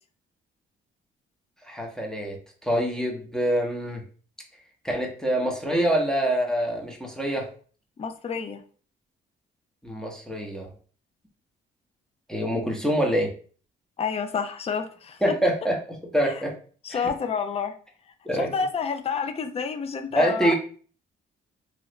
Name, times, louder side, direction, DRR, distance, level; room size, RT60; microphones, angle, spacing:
voice 1, 1.7-4.0 4.8-7.5 9.8-10.7 12.3-13.3 15.2-16.6 16.9-17.1 18.3-18.5 20.1-20.5, right 1 dB, 5° left, 0 dB, 0.9 m, -25 dB
voice 2, 8.0-8.6 14.0-15.2 16.2-16.3 16.8-17.7 18.3-20.5, left 6 dB, 30° left, 7 dB, 0.5 m, -29 dB
3.0 x 2.5 x 3.0 m, 0.41 s
cardioid pair, 90°, 20 cm